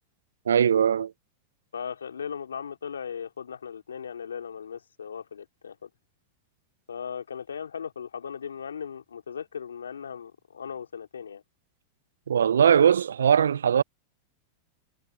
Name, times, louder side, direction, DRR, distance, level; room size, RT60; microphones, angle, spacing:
voice 1, 0.5-1.1 12.3-13.8, right 8 dB, 80° right, 0.4 m, -20 dB
voice 2, 1.7-5.9 6.9-11.4, left 7 dB, 85° left, 3.5 m, -37 dB
hypercardioid pair, 95°, 0 cm